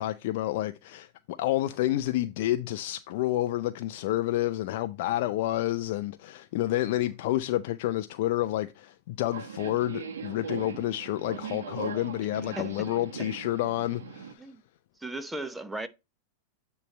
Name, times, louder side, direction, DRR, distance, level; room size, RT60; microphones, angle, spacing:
voice 1, 0.0-14.4, left 15 dB, 60° left, 0.4 m, -29 dB
Subway metro underground, 9.3-14.3, right 6 dB, 75° right, 1.2 m, -39 dB
voice 2, 12.3-12.9 14.4-14.6 15.0-15.9, right 2 dB, 5° right, 0.8 m, -37 dB
9.1 x 3.2 x 5.2 m
hypercardioid pair, 100°, 0 cm